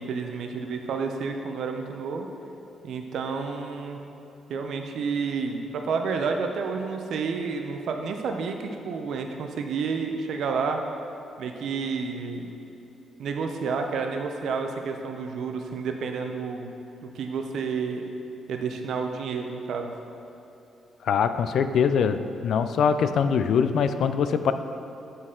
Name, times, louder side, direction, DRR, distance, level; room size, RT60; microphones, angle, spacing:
voice 1, 0.0-2.3 2.8-4.1 4.5-10.8 11.4-12.5 13.2-16.7 17.0-18.0 18.5-19.9, right 5 dB, 70° right, 4 dB, 0.6 m, -30 dB
voice 2, 21.1-22.2 22.4-24.5, left 7 dB, 70° left, 10 dB, 0.3 m, -22 dB
9.5 x 4.0 x 3.7 m, 2.9 s
cardioid pair, 110°, 0 cm